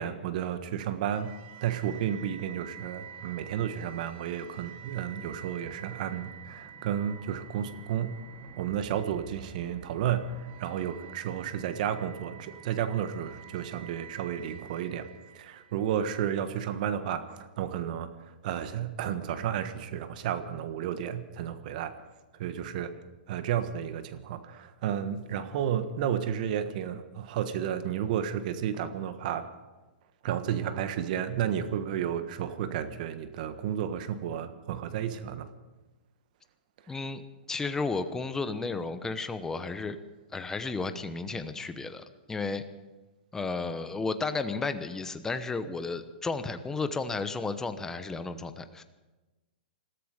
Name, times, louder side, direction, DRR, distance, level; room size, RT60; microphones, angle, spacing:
voice 1, 0.0-1.3 1.6-8.2 8.6-15.1 15.3-21.9 22.4-22.9 23.3-29.5 30.2-35.5, right 9 dB, 50° right, 11 dB, 1.4 m, -32 dB
sound 1, 1.1-16.2, right 8 dB, 35° right, 2.0 m, -48 dB
voice 2, 36.9-37.2 37.5-40.0 40.3-42.6 43.3-48.8, left 4 dB, 10° left, 10 dB, 0.9 m, -33 dB
21.0 x 13.5 x 5.1 m, 1.2 s
hypercardioid pair, 135°, 5 cm